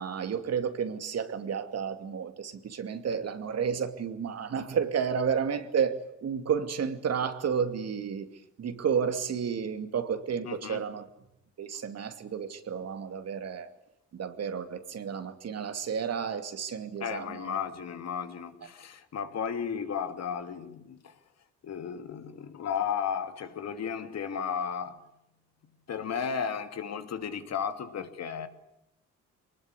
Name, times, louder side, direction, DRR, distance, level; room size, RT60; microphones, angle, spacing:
voice 1, 0.0-8.3 8.6-11.1 11.6-13.7 14.1-17.6, right 7 dB, 55° right, 2.6 m, -31 dB
voice 2, 10.4-10.8 17.0-21.2 21.6-25.0 25.9-28.5, left 7 dB, 60° left, 2.5 m, -34 dB
23.0 x 20.5 x 9.8 m
cardioid pair, 90°, 30 cm